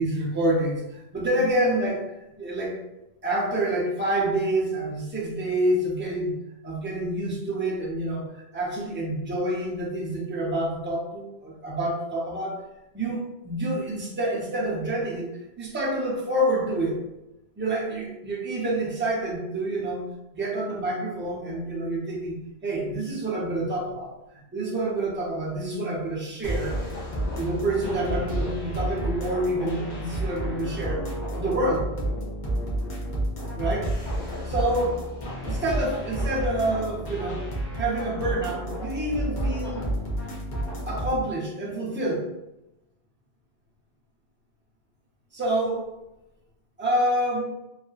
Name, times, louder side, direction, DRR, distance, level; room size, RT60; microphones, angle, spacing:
voice 1, 0.0-2.0 2.4-2.8 3.2-6.3 6.6-12.6 12.9-15.3 15.6-17.0 17.6-20.1 20.3-24.1 24.5-26.8 27.4-31.1 31.3-31.9 33.5-34.0 34.4-35.0 35.5-37.5 37.8-39.9 40.8-42.3 45.3-45.9 46.8-47.4, right 1 dB, 15° right, -5 dB, 0.5 m, -27 dB
sound 1, 26.4-41.2, right 1 dB, 50° left, 0.8 m, -30 dB
2.7 x 2.4 x 2.3 m, 0.92 s
omnidirectional pair, 1.1 m